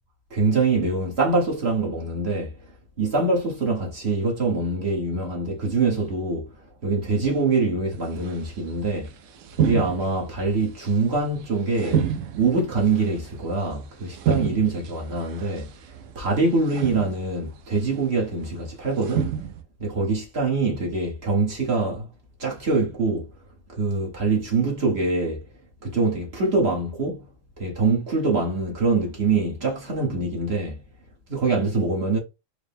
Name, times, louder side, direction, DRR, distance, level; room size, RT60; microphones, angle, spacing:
voice 1, 0.3-2.5 3.0-6.5 6.8-9.1 9.6-12.0 12.3-15.7 16.1-19.3 19.8-22.1 22.4-23.3 23.8-25.4 25.8-27.3 27.6-30.8 31.3-32.2, right 3 dB, 50° right, 1.4 m, -24 dB
sound 1, 8.2-8.4 8.7-9.0 9.4-10.4 10.8-11.4 11.7-13.7 14.1-15.6 15.9-16.3 16.7-17.3 18.0-18.6 19.0-19.6, right 8 dB, 75° right, 0.9 m, -28 dB
4.7 x 2.2 x 3.4 m
omnidirectional pair, 1.4 m